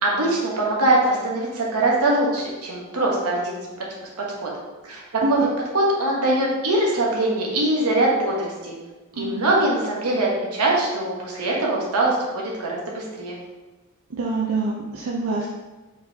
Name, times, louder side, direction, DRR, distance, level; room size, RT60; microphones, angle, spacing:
voice 1, 0.0-3.6 4.4-4.5 4.8-5.5 5.7-8.7 9.2-13.4, right 2 dB, 90° right, -2 dB, 1.1 m, -22 dB
voice 2, 9.2-9.5 14.2-15.5, right 2 dB, 65° right, -3 dB, 0.5 m, -25 dB
4.6 x 4.2 x 2.8 m, 1.2 s
head